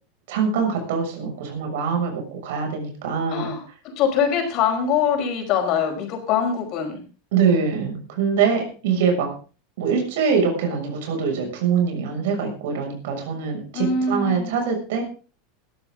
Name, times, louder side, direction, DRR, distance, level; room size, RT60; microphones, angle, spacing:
voice 1, 0.3-3.5 7.3-9.3 9.8-15.0, right 6 dB, 70° right, 2 dB, 6.7 m, -23 dB
voice 2, 3.3-7.0 13.7-14.5, left 6 dB, 40° left, 4 dB, 5.0 m, -23 dB
19.5 x 13.0 x 3.9 m, 0.37 s
supercardioid pair, 165°, 0 cm